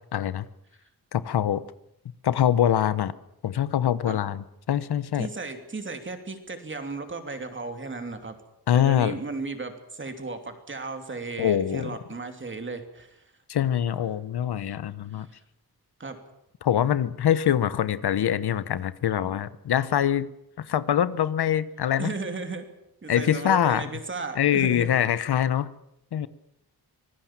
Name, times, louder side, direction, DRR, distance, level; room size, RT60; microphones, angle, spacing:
voice 1, 0.1-0.4 1.1-1.6 2.2-3.1 3.4-5.3 8.7-9.2 11.4-12.0 13.5-15.3 16.6-20.3 20.6-22.1 23.1-23.9 24.4-25.7 26.1-26.3, left 10 dB, 90° left, 15 dB, 1.0 m, -24 dB
voice 2, 5.2-8.4 8.7-13.2 15.1-15.4 16.0-16.2 19.2-19.4 22.0-22.7 23.0-24.9, right 3 dB, 30° right, 6 dB, 2.9 m, -35 dB
25.0 x 19.0 x 7.4 m, 0.81 s
wide cardioid pair, 160°, 38 cm